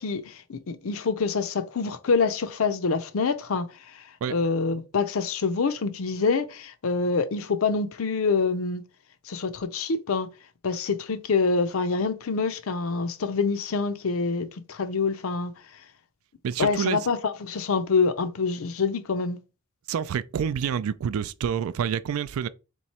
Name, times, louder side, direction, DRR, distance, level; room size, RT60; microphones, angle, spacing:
voice 1, 0.0-3.7 4.3-8.8 9.3-10.3 10.6-15.5 16.6-19.4, left 4 dB, 75° left, 0.5 m, -26 dB
voice 2, 16.4-17.0 19.9-22.5, right 8 dB, 80° right, 0.3 m, -28 dB
3.6 x 3.0 x 4.2 m
head